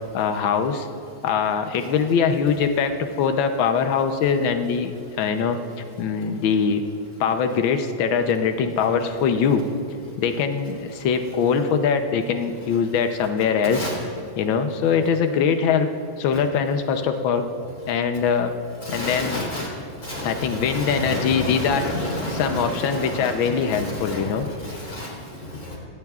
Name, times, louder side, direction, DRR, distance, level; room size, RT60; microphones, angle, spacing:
voice 1, 0.1-0.9 1.2-6.8 7.2-9.6 10.2-13.9 14.4-15.9 16.2-17.4 17.9-18.5 18.9-19.4 20.2-21.9 22.3-24.6, left 6 dB, 80° left, 6 dB, 1.6 m, -22 dB
voice 2, 18.8-19.7 20.0-25.8, left 1 dB, 45° left, -3 dB, 4.3 m, -30 dB
25.0 x 18.5 x 2.4 m, 2.4 s
omnidirectional pair, 2.2 m